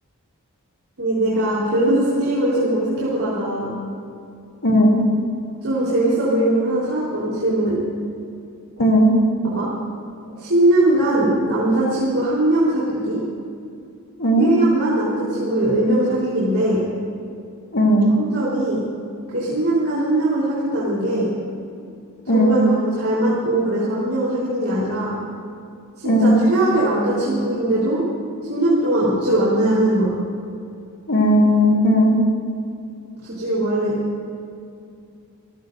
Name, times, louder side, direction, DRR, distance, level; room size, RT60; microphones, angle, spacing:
voice 1, 1.0-3.7 5.6-7.8 9.6-9.7 10.4-13.2 14.4-16.8 18.1-18.8 19.3-21.3 22.3-25.1 26.0-28.0 28.5-30.1 33.2-34.0, right 1 dB, 70° right, -8 dB, 3.8 m, -20 dB
voice 2, 4.6-5.1 8.8-9.2 14.2-14.5 17.7-18.1 22.3-22.6 26.0-26.4 31.1-32.2, equal, 65° left, 0 dB, 3.0 m, -16 dB
26.0 x 14.5 x 2.6 m, 2.5 s
head